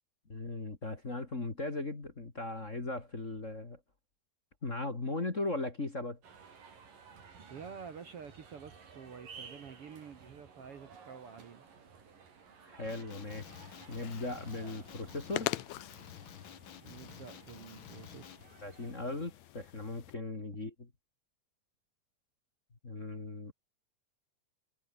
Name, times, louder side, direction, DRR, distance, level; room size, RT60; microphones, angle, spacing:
voice 1, 0.3-3.8 4.6-6.2 12.6-13.6 13.9-15.6 18.6-20.7 22.8-23.5, left 2 dB, 25° left, 2.6 m, -38 dB
sound 1, 6.2-18.9, right 6 dB, 80° right, 6.0 m, -55 dB
voice 2, 7.5-11.7 16.8-18.4, right 6 dB, 50° right, 2.3 m, -49 dB
Male speech man speaking, 12.8-18.5, left 9 dB, 55° left, 1.5 m, -51 dB
sound 2, 13.1-20.1, left 17 dB, 80° left, 1.6 m, -44 dB
omnidirectional pair, 3.8 m